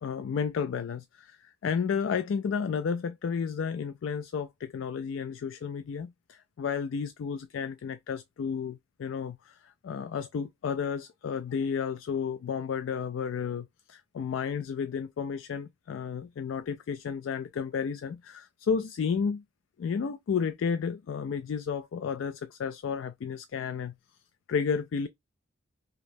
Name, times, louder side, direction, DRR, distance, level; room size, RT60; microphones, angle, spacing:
voice 1, 0.0-19.4 19.8-23.9 24.5-25.1, left 6 dB, 80° left, 0.3 m, -32 dB
5.0 x 2.0 x 2.6 m
head